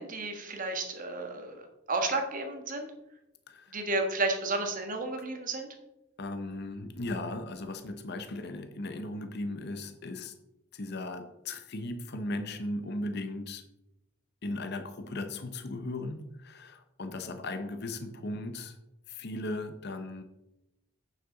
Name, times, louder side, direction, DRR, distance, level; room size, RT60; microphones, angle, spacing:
voice 1, 0.0-1.6 1.9-2.9 3.7-5.7, right 2 dB, 40° right, 4 dB, 1.5 m, -32 dB
voice 2, 3.5-3.8 6.2-10.3 10.7-13.6 14.4-18.8 19.1-20.2, left 2 dB, 50° left, 8 dB, 0.8 m, -37 dB
8.6 x 7.5 x 4.0 m, 0.89 s
head